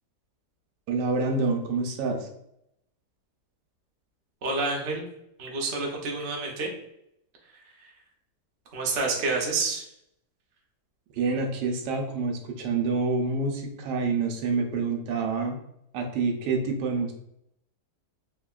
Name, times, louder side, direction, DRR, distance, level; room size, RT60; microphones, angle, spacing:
voice 1, 0.9-2.3 11.1-15.6 15.9-17.1, right 4 dB, 85° right, 3 dB, 1.2 m, -27 dB
voice 2, 4.4-5.0 5.4-6.7 7.8-7.9 8.7-9.8, right 3 dB, 55° right, 0 dB, 0.8 m, -28 dB
3.4 x 2.8 x 2.3 m, 0.78 s
omnidirectional pair, 1.8 m